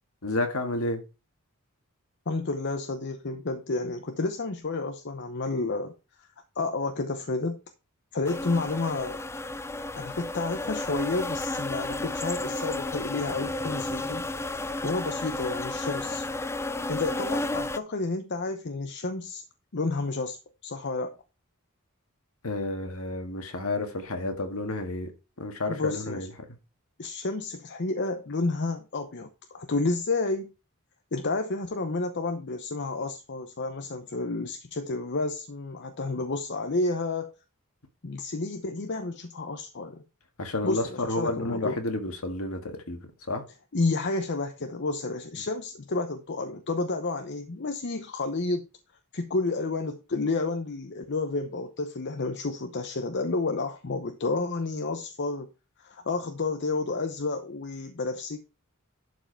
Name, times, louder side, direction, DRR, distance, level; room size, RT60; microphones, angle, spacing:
voice 1, 0.2-1.0 22.4-25.1 25.4-26.3 40.4-43.0 43.3-43.4, left 2 dB, 70° left, 1.8 m, -30 dB
voice 2, 2.3-5.9 6.2-6.3 6.6-7.6 8.1-9.2 10.0-14.2 14.5-16.3 16.9-19.4 19.7-20.4 20.6-21.1 25.7-26.3 27.0-30.5 31.1-37.3 38.0-40.0 40.6-41.8 43.7-48.7 49.1-55.5 55.8-58.4, left 3 dB, 50° left, 0.8 m, -30 dB
sound 1, 8.2-17.8, left 2 dB, 10° left, 0.4 m, -32 dB
11.5 x 4.7 x 4.5 m
head